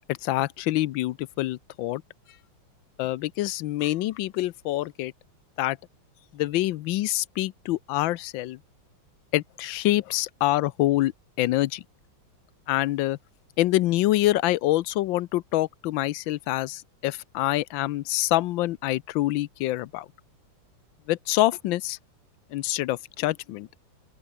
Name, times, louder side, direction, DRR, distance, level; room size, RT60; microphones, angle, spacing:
voice 1, 0.1-2.0 3.0-5.1 5.6-5.8 6.3-8.6 9.3-11.1 11.4-11.8 12.7-13.2 13.6-20.1 21.1-22.0 22.5-23.7, left 16 dB, 80° left, 1.4 m, -26 dB
open air
omnidirectional pair, 2.1 m